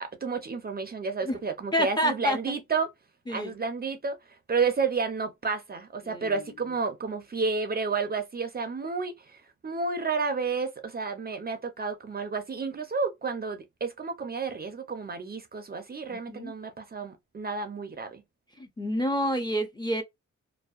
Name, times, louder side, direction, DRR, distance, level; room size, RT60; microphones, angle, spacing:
voice 1, 0.0-2.9 3.3-4.2 4.5-18.2, right 4 dB, 35° right, 0.5 m, -31 dB
voice 2, 1.7-2.5 3.3-3.5 6.0-6.5 16.1-16.5 18.6-20.0, equal, 15° left, 0.6 m, -29 dB
2.6 x 2.1 x 2.3 m
wide cardioid pair, 110°, 29 cm